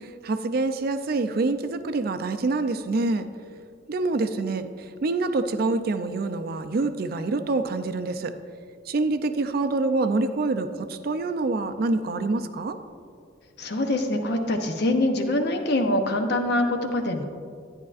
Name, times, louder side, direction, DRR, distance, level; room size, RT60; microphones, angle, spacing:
voice 1, 0.2-3.3 3.9-4.6 5.0-8.3 8.9-12.8, right 3 dB, 55° right, 9 dB, 0.4 m, -26 dB
voice 2, 13.6-17.2, left 1 dB, 60° left, 5 dB, 0.8 m, -24 dB
11.0 x 9.4 x 2.5 m, 2.1 s
head